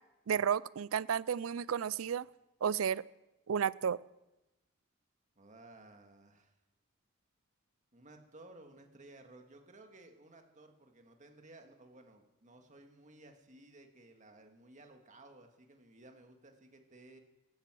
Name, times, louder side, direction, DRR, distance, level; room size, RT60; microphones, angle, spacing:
voice 1, 0.3-2.3 2.6-3.0 3.5-4.0, right 8 dB, 80° right, 21 dB, 0.4 m, -32 dB
voice 2, 5.4-6.5 7.9-17.2, right 2 dB, 40° right, 4 dB, 1.8 m, -57 dB
16.0 x 12.5 x 6.2 m, 0.97 s
head